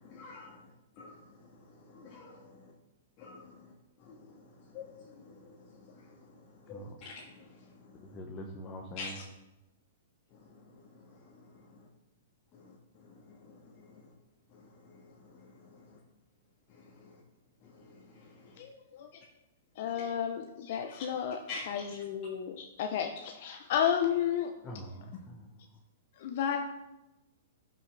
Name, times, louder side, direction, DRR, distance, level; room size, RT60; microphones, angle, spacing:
voice 1, 0.0-0.5 1.0-1.1 1.9-2.4 3.2-3.5 4.0-4.3 4.7-5.5 6.7-7.1 9.0-9.2 13.8-13.9 21.5-21.6, left 4 dB, 35° left, -5 dB, 1.6 m, -44 dB
voice 2, 8.1-9.2 24.6-25.5, equal, 20° left, 0 dB, 1.1 m, -44 dB
voice 3, 18.6-19.1 19.8-24.5 24.9-25.0 26.2-26.6, left 9 dB, 55° left, 4 dB, 0.8 m, -32 dB
12.0 x 6.0 x 3.4 m, 0.97 s
hypercardioid pair, 135°, 0 cm